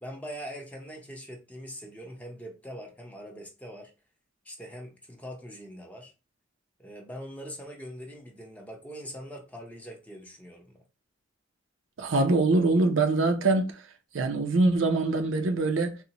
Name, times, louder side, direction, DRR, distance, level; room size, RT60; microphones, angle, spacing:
voice 1, 0.0-3.9 4.4-6.1 6.8-10.8, equal, 10° left, 0.6 m, -42 dB
voice 2, 12.0-13.8 14.1-16.0, right 3 dB, 75° right, 0.6 m, -24 dB
3.9 x 2.1 x 2.8 m
head